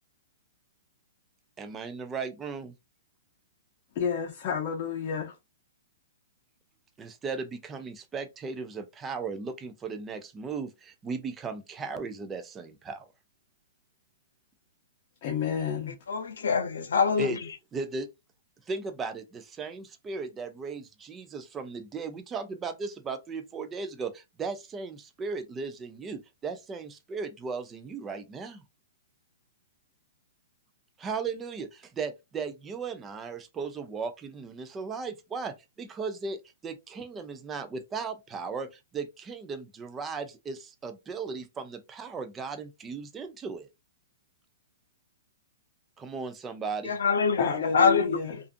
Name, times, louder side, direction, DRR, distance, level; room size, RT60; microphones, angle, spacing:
voice 1, 1.6-2.7 7.0-13.1 17.2-17.4 17.7-18.1 18.7-28.6 31.0-43.7 46.0-46.9, right 4 dB, 15° right, 0.4 m, -36 dB
voice 2, 3.9-5.3 15.2-16.0 47.4-48.3, left 7 dB, 40° left, 0.6 m, -30 dB
voice 3, 16.1-17.4 46.8-48.4, left 5 dB, 90° left, 0.5 m, -25 dB
2.5 x 2.4 x 2.4 m
hypercardioid pair, 150°, 0 cm